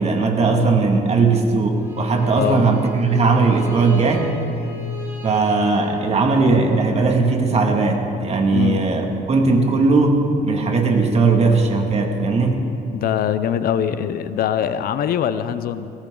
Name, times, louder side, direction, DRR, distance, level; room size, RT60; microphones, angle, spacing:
voice 1, 0.0-4.3 5.2-12.6, right 3 dB, 40° right, 2 dB, 2.2 m, -18 dB
Bowed string instrument, 1.8-6.7, right 1 dB, 15° right, 4.0 m, -35 dB
voice 2, 8.5-8.8 12.9-15.9, left 9 dB, 60° left, 12 dB, 0.7 m, -22 dB
21.0 x 17.5 x 3.9 m, 2.8 s
cardioid pair, 110°, 17 cm